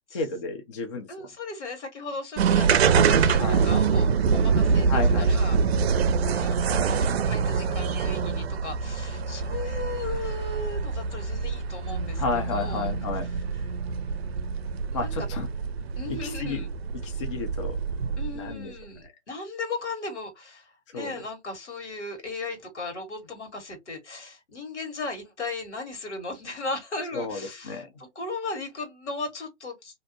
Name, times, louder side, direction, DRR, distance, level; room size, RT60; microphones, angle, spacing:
voice 1, 0.1-1.1 3.4-3.8 4.9-5.3 12.2-13.3 14.9-15.5 16.2-16.7 17.0-17.8 18.3-18.7 20.9-21.1 27.1-27.9, left 4 dB, 25° left, 0.4 m, -31 dB
voice 2, 1.1-12.2 12.5-12.9 15.0-15.1 16.0-16.7 18.2-27.8 28.1-30.0, left 3 dB, 70° left, 1.4 m, -37 dB
sound 1, 2.4-18.5, right 5 dB, 60° right, 0.5 m, -25 dB
2.6 x 2.0 x 2.7 m
figure-of-eight pair, 125°, 36 cm